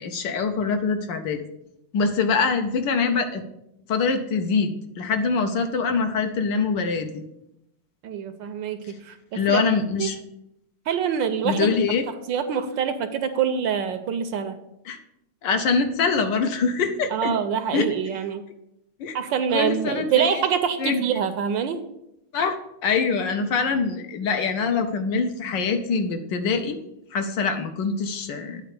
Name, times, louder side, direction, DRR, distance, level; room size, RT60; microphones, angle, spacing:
voice 1, 0.0-1.4 1.9-3.4 3.9-7.2 9.3-10.2 11.4-12.0 14.9-15.0 15.4-17.3 17.7-17.8 19.0-19.1 19.5-20.4 20.8-21.0 22.3-22.6 22.8-26.8 27.1-28.6, left 5 dB, 70° left, 7 dB, 1.3 m, -24 dB
voice 2, 8.0-9.6 10.0-10.1 10.9-11.8 12.3-14.6 17.1-18.4 19.1-21.8, right 8 dB, 75° right, 9 dB, 1.2 m, -25 dB
9.0 x 4.3 x 6.6 m, 0.82 s
omnidirectional pair, 2.3 m